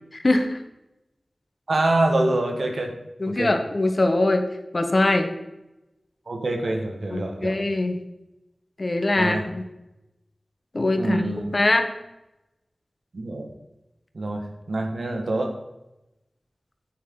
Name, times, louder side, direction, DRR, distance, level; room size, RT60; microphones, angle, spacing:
voice 1, 0.1-0.6 3.2-4.5 4.7-5.3 7.1-8.0 8.8-9.6 10.7-11.9, left 2 dB, 50° left, 6 dB, 1.4 m, -22 dB
voice 2, 1.7-2.9 3.4-3.5 6.3-7.6 9.2-9.5 11.0-11.4 13.1-13.5 14.1-15.5, right 2 dB, 75° right, 3 dB, 1.8 m, -25 dB
9.4 x 9.3 x 4.0 m, 0.94 s
wide cardioid pair, 50°, 0 cm